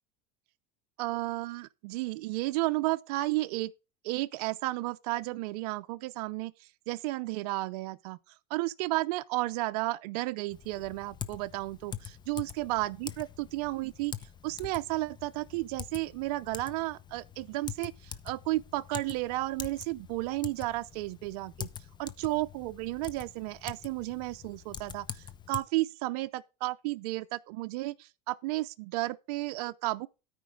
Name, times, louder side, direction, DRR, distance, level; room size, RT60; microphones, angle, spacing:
voice 1, 1.0-3.7 4.0-14.1 14.4-21.7 22.0-30.1, right 19 dB, 70° right, 0.5 m, -33 dB
Typing, 10.5-25.6, left 8 dB, 20° left, 0.8 m, -44 dB
13.0 x 5.1 x 4.7 m
supercardioid pair, 125°, 21 cm